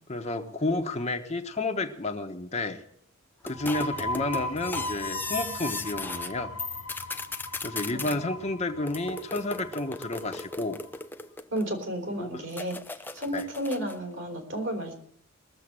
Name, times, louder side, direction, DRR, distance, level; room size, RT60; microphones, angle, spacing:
voice 1, 0.1-2.8 3.4-6.5 7.6-10.8 12.2-12.4 13.3-13.4, left 2 dB, 35° left, 4 dB, 1.2 m, -31 dB
sound 1, 3.4-10.9, left 1 dB, 80° left, 0.7 m, -38 dB
sound 2, 3.5-6.3 6.6-8.2 8.9-11.8 12.5-14.0, left 3 dB, 10° left, 0.6 m, -37 dB
voice 2, 7.9-8.5 11.5-12.8 13.1-14.9, right 1 dB, 65° right, 3 dB, 4.1 m, -33 dB
20.5 x 7.4 x 8.9 m, 0.68 s
head